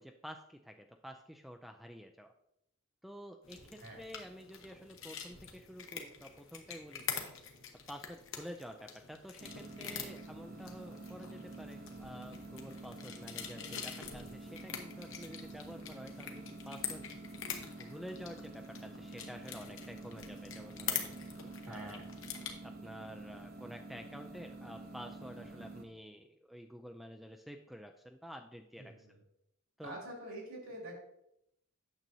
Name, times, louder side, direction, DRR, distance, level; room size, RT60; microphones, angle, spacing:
voice 1, 0.0-2.3 3.0-7.3 7.9-17.0 17.8-21.0 21.7-22.0 22.6-29.1 29.8-30.0, equal, ahead, 5 dB, 0.3 m, -49 dB
sound 1, 3.4-22.5, left 7 dB, 65° left, 1.0 m, -45 dB
sound 2, 9.4-25.8, right 2 dB, 45° right, 0.9 m, -49 dB
voice 2, 21.6-22.0 28.8-29.2 29.8-30.9, right 1 dB, 80° right, -2 dB, 2.9 m, -46 dB
9.0 x 6.8 x 2.7 m, 0.80 s
head